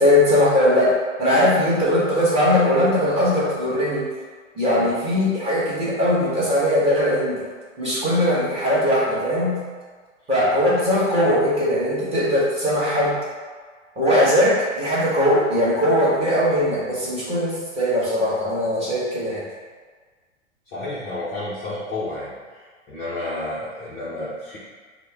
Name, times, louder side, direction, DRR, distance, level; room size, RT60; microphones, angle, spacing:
voice 1, 0.0-4.0 4.5-7.4 7.8-9.6 10.3-13.2 14.0-19.4, left 1 dB, 15° right, -8 dB, 1.2 m, -20 dB
voice 2, 20.7-22.3 22.9-24.6, left 2 dB, 15° left, -9 dB, 0.3 m, -30 dB
4.4 x 2.0 x 3.3 m, 1.5 s
figure-of-eight pair, 110°, 39 cm